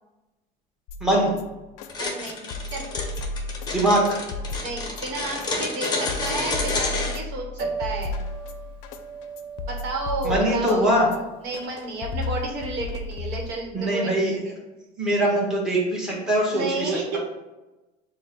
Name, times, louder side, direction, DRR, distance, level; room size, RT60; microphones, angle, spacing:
sound 1, 0.9-13.9, left 3 dB, 80° left, 0.5 m, -34 dB
voice 1, 1.0-1.3 3.7-4.2 10.2-11.1 13.7-14.4 15.0-17.2, right 1 dB, 5° right, -5 dB, 1.1 m, -22 dB
sound 2, 1.9-7.2, left 3 dB, 20° left, 0.8 m, -29 dB
voice 2, 2.0-2.4 2.7-2.8 4.6-8.2 9.6-14.6 16.5-17.2, right 3 dB, 65° right, 0 dB, 1.1 m, -32 dB
Piano, 7.5-13.5, right 5 dB, 25° right, 0.4 m, -38 dB
6.3 x 2.2 x 3.7 m, 1.1 s
cardioid pair, 155°, 20 cm